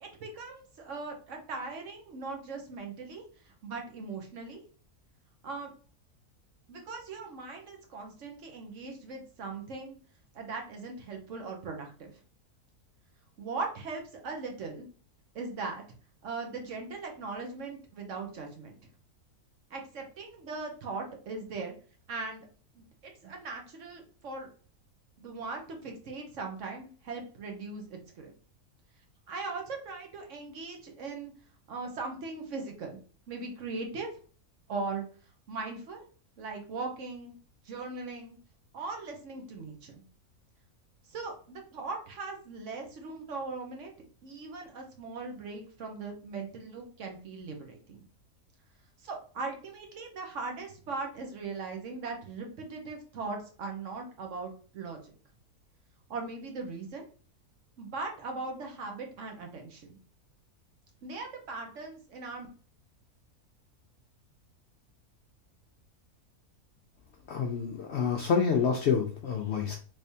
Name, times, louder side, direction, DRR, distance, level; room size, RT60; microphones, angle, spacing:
voice 1, 0.0-4.6 5.4-5.7 6.7-10.0 10.3-12.2 13.4-14.9 15.3-15.8 16.2-18.8 19.7-21.7 22.1-22.5 22.7-22.8 23.2-24.5 25.2-28.3 29.3-31.3 31.7-33.0 33.3-34.1 34.7-35.1 35.5-36.1 36.4-37.3 37.6-38.4 38.7-40.0 41.1-43.9 44.2-48.0 49.0-55.1 56.1-57.0 57.8-60.0 61.0-62.5, right 3 dB, 60° right, 3 dB, 1.1 m, -39 dB
voice 2, 67.3-69.8, left 6 dB, 70° left, 1 dB, 0.6 m, -28 dB
3.3 x 3.3 x 2.7 m, 0.40 s
omnidirectional pair, 1.6 m